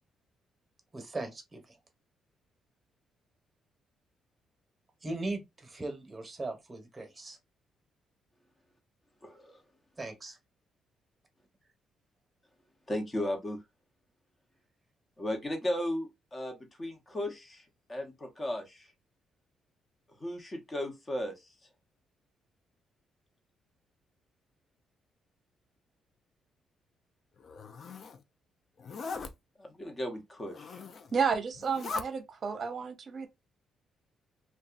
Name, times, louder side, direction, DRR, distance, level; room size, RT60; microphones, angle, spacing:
voice 1, 0.9-1.8 5.0-7.4 10.0-10.4, right 2 dB, 20° right, 1.0 m, -39 dB
voice 2, 9.2-9.6 12.9-13.6 15.2-18.9 20.2-21.5 29.6-30.8, left 1 dB, 25° left, 0.9 m, -36 dB
Zipper (clothing), 27.4-28.2 28.8-29.3 30.4-31.1 31.5-32.1, left 4 dB, 55° left, 0.4 m, -40 dB
voice 3, 31.1-33.3, right 6 dB, 45° right, 0.7 m, -31 dB
2.6 x 2.2 x 2.4 m
cardioid pair, 90°, 0 cm